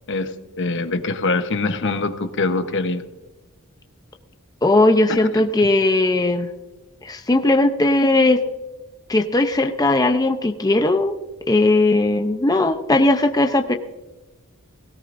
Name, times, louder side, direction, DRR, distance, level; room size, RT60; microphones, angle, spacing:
voice 1, 0.6-3.0, left 3 dB, 55° left, 9 dB, 1.0 m, -23 dB
voice 2, 4.6-6.5 7.0-8.4 9.1-11.2 11.5-13.7, left 2 dB, 15° left, 4 dB, 0.6 m, -18 dB
18.0 x 16.5 x 2.6 m, 1.1 s
head